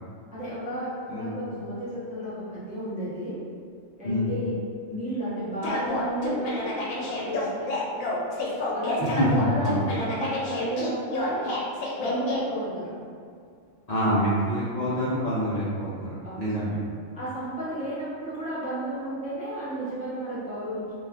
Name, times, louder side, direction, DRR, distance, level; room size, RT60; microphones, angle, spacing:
voice 1, 0.3-3.3 4.0-4.5 4.9-7.5 8.7-9.7 10.0-11.5 12.0-12.9 16.2-16.3 17.1-20.8, right 1 dB, 10° right, -11 dB, 0.4 m, -32 dB
sound 1, 5.6-12.4, left 2 dB, 85° left, 1.0 m, -30 dB
voice 2, 9.2-9.9 13.9-16.8, equal, 50° left, -11 dB, 0.5 m, -26 dB
2.4 x 2.3 x 3.4 m, 2.3 s
omnidirectional pair, 1.4 m